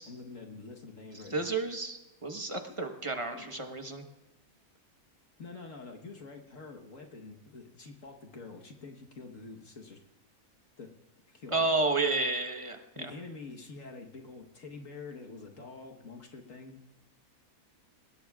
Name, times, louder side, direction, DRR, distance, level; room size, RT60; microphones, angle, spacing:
voice 1, 0.0-1.5 2.8-2.9 3.3-3.6 5.4-10.0 10.8-10.9 11.3-11.7 12.9-16.8, left 4 dB, 65° left, 1 dB, 1.6 m, -46 dB
voice 2, 1.3-4.0 11.5-13.1, right 3 dB, 25° right, 5 dB, 1.1 m, -31 dB
24.0 x 19.0 x 2.4 m, 1.0 s
omnidirectional pair, 1.5 m